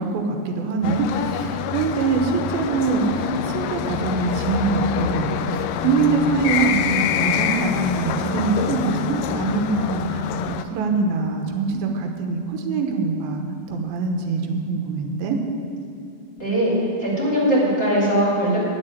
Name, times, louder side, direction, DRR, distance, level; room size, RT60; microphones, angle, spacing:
voice 1, 0.0-13.4 13.7-15.4, right 4 dB, 85° right, 3 dB, 2.9 m, -24 dB
sound 1, 0.8-10.6, left 9 dB, 80° left, 2.1 m, -26 dB
voice 2, 16.4-16.7 17.0-18.6, right 1 dB, 20° left, -6 dB, 2.8 m, -20 dB
10.0 x 7.6 x 9.2 m, 2.4 s
omnidirectional pair, 4.2 m